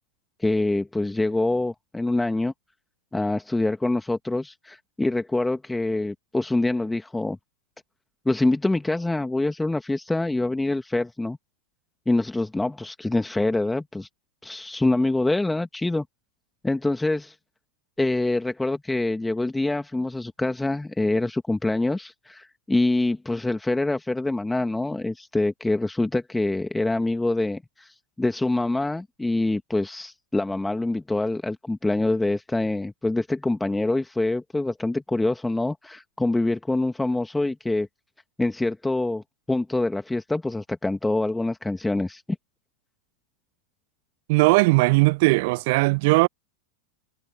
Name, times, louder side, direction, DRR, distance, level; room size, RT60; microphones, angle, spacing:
voice 1, 0.4-2.5 3.1-7.4 8.3-11.4 12.1-14.1 14.4-16.0 16.6-17.3 18.0-37.9 38.4-42.2, left 2 dB, 5° left, 2.4 m, -25 dB
voice 2, 44.3-46.3, right 25 dB, 50° right, 1.0 m, -18 dB
figure-of-eight pair, 90°, 0 cm